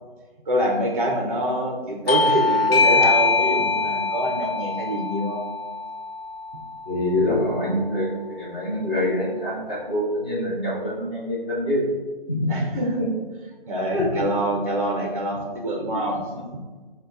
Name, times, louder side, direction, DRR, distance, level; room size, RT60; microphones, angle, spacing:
voice 1, 0.5-5.4 12.5-12.9 13.7-16.6, right 1 dB, 35° right, 1 dB, 0.6 m, -25 dB
Bell / Doorbell, 2.1-7.2, left 4 dB, 90° left, 0.5 m, -23 dB
voice 2, 6.9-11.9 12.3-13.2 13.9-14.1 15.9-16.0, left 1 dB, 10° left, -10 dB, 0.6 m, -25 dB
5.4 x 2.2 x 3.9 m, 1.3 s
figure-of-eight pair, 160°, 29 cm